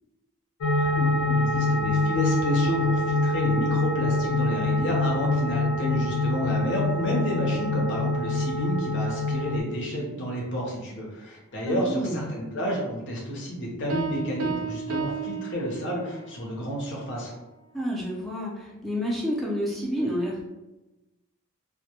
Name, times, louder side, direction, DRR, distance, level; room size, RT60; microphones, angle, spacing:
sound 1, 0.6-9.6, left 2 dB, 90° left, 0.4 m, -25 dB
voice 1, 0.7-17.3, equal, 55° left, -2 dB, 0.7 m, -30 dB
voice 2, 11.6-12.2 17.7-20.4, equal, ahead, -4 dB, 0.4 m, -29 dB
Piano, 13.9-16.3, right 6 dB, 65° right, 0.3 m, -32 dB
2.1 x 2.1 x 2.8 m, 1.0 s
head